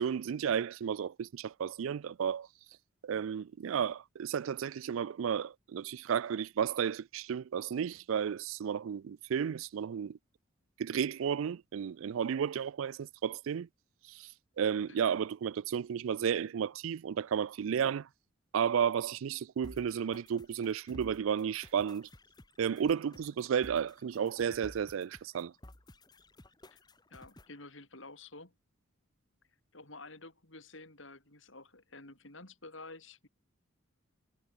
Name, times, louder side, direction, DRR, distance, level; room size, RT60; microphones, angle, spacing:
voice 1, 0.0-2.5 3.0-10.2 10.8-13.7 14.1-14.3 14.6-18.1 18.5-22.1 22.6-25.5, right 8 dB, 80° right, 0.4 m, -33 dB
sound 1, 19.6-27.6, left 1 dB, 20° left, 1.2 m, -55 dB
voice 2, 27.1-28.5 29.7-33.3, left 3 dB, 70° left, 5.6 m, -50 dB
head